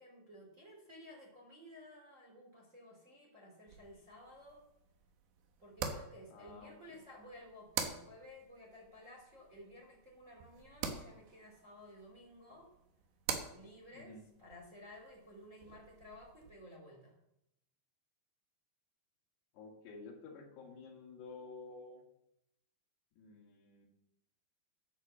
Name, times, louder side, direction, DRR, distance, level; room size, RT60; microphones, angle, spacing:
voice 1, 0.0-4.6 5.6-12.7 13.5-17.2, left 1 dB, 20° right, -1 dB, 2.3 m, -55 dB
sound 1, 3.7-16.5, right 7 dB, 85° right, 3.5 m, -46 dB
voice 2, 6.3-7.0 13.9-14.2 19.5-22.0 23.2-23.9, left 4 dB, 80° left, 0 dB, 4.2 m, -51 dB
11.5 x 8.1 x 7.3 m, 0.82 s
omnidirectional pair, 4.8 m